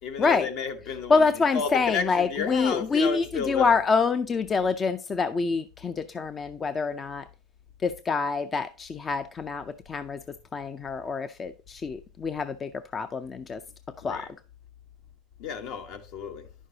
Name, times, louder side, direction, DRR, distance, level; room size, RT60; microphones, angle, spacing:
voice 1, 0.0-3.8 14.0-14.3 15.4-16.5, left 6 dB, 60° left, 1.3 m, -32 dB
voice 2, 1.1-7.3 7.8-10.2 10.5-13.6 14.0-14.2, left 4 dB, 25° left, 0.4 m, -26 dB
10.0 x 6.3 x 2.8 m
supercardioid pair, 130°, 0 cm